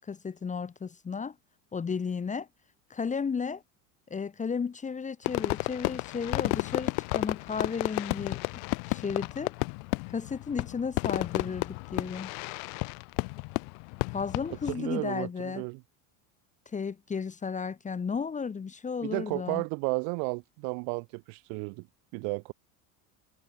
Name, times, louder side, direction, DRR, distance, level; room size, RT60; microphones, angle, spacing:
voice 1, 0.0-1.3 1.7-2.5 2.9-3.6 4.1-8.4 8.9-9.5 10.1-12.3 14.1-15.6 16.7-19.6, left 5 dB, 20° left, 1.3 m, -34 dB
Fireworks, 5.3-14.8, left 40 dB or more, 70° left, 2.2 m, -32 dB
voice 2, 14.7-15.8 19.0-21.9 22.1-22.5, right 40 dB or more, 70° right, 4.2 m, -33 dB
supercardioid pair, 125°, 40 cm